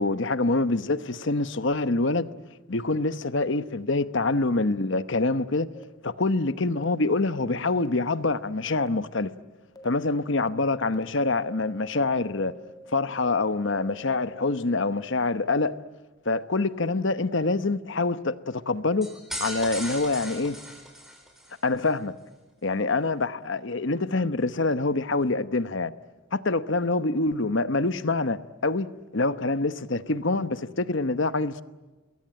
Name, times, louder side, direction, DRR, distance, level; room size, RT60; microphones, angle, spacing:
voice 1, 0.0-2.3 2.7-5.7 6.0-9.3 9.8-12.5 12.9-15.8 16.2-19.1 19.4-20.6 21.6-22.1 22.6-25.9 26.3-31.6, left 3 dB, 55° left, 1.0 m, -25 dB
sound 1, 5.7-5.8 6.7-6.8 7.8-7.9 8.8-8.9 9.7-9.8 10.4-10.5 10.9-11.0 11.4-14.6, right 1 dB, 20° left, 1.8 m, -47 dB
sound 2, 19.0-21.5, equal, ahead, 4.6 m, -37 dB
28.0 x 22.0 x 8.9 m
head